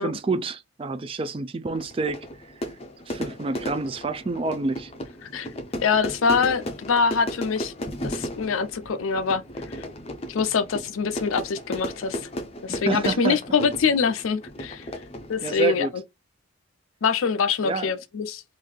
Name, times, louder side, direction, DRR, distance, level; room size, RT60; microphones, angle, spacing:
voice 1, 0.0-2.3 3.1-4.9 12.7-13.4 15.4-15.9 17.6-17.9, right 3 dB, 25° right, 0.3 m, -28 dB
Fire / Fireworks, 1.7-15.8, equal, 30° left, 0.5 m, -35 dB
voice 2, 5.8-7.7 8.0-9.4 9.7-9.9 10.3-12.2 12.6-14.8 15.3-15.9 17.0-18.4, left 5 dB, 80° left, 0.5 m, -24 dB
3.7 x 2.6 x 3.2 m
head